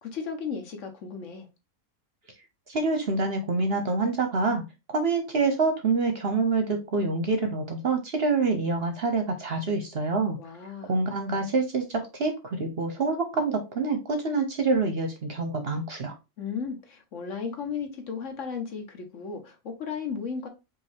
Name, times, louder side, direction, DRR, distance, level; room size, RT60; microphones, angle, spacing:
voice 1, 0.0-1.5 10.4-11.0 16.4-20.5, left 6 dB, 60° left, 1.1 m, -35 dB
voice 2, 2.7-4.6 4.9-10.4 10.9-16.1, right 3 dB, 50° right, 0.9 m, -26 dB
5.2 x 2.6 x 3.4 m
omnidirectional pair, 1.6 m